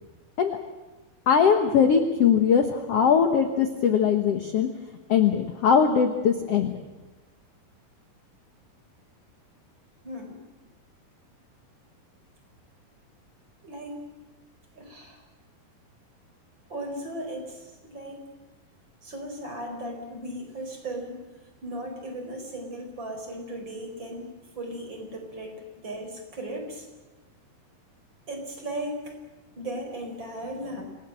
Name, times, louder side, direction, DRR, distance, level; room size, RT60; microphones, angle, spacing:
voice 1, 1.3-4.7 5.1-6.7, left 7 dB, 60° left, 6 dB, 1.7 m, -21 dB
voice 2, 10.0-10.4 13.6-14.0 14.7-15.2 16.7-18.2 19.0-21.2 21.6-26.9 28.3-29.1 29.5-30.8, right 1 dB, 30° right, 3 dB, 5.0 m, -36 dB
27.0 x 18.5 x 7.6 m, 1.2 s
omnidirectional pair, 4.3 m